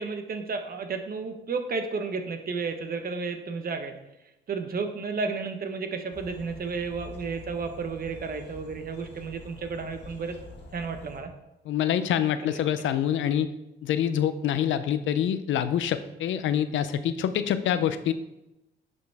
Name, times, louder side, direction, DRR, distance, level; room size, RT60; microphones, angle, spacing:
voice 1, 0.0-3.9 4.5-10.4 10.7-11.3 12.5-12.6, right 4 dB, 50° right, 6 dB, 1.2 m, -32 dB
sound 1, 6.1-11.2, left 3 dB, 60° left, 1.6 m, -46 dB
voice 2, 11.7-13.5 13.8-18.1, left 10 dB, 75° left, 12 dB, 0.6 m, -26 dB
10.5 x 5.4 x 3.5 m, 0.92 s
cardioid pair, 90°, 20 cm